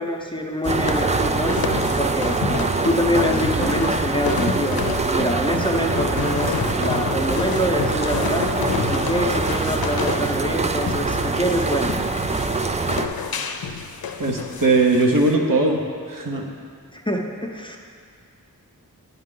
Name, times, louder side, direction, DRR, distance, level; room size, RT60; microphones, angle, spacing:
voice 1, 0.0-1.6 2.0-12.0 16.9-17.8, equal, 15° left, 1 dB, 0.7 m, -25 dB
sound 1, 0.6-15.3, left 6 dB, 75° left, 0.5 m, -29 dB
sound 2, 0.6-13.1, right 3 dB, 20° right, 0.3 m, -24 dB
voice 2, 14.2-15.8 16.1-16.5, right 2 dB, 65° right, 0 dB, 1.0 m, -19 dB
9.4 x 5.7 x 3.8 m, 2.1 s
wide cardioid pair, 65°, 36 cm